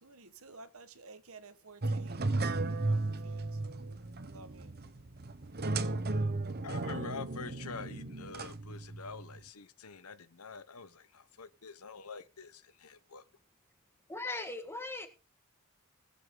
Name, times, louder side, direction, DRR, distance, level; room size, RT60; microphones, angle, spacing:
voice 1, 0.0-2.3 2.8-3.6 4.2-4.7, right 3 dB, 65° right, 1.5 m, -53 dB
sound 1, 1.8-9.4, right 2 dB, 45° right, 1.0 m, -35 dB
voice 2, 6.6-13.2, left 5 dB, 80° left, 1.0 m, -46 dB
voice 3, 14.1-15.1, left 2 dB, 10° left, 1.6 m, -38 dB
21.5 x 7.8 x 3.8 m
head